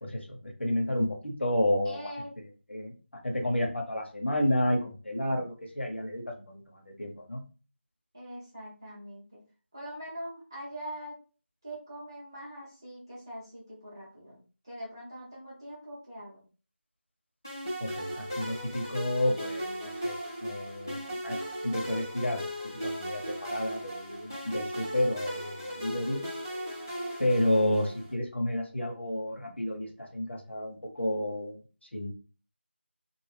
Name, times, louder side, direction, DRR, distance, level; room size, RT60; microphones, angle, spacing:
voice 1, 0.0-2.1 2.7-2.9 3.2-7.4 17.8-21.4 21.6-22.5 22.8-26.2 27.2-31.6 31.9-32.1, left 1 dB, 65° left, 1 dB, 1.0 m, -31 dB
voice 2, 1.8-2.3 8.1-9.4 9.7-11.2 11.6-14.4 14.6-16.4, equal, 20° right, -7 dB, 0.8 m, -43 dB
sound 1, 17.4-28.1, equal, 15° left, 0.5 m, -37 dB
2.5 x 2.0 x 3.4 m, 0.35 s
figure-of-eight pair, 180°, 7 cm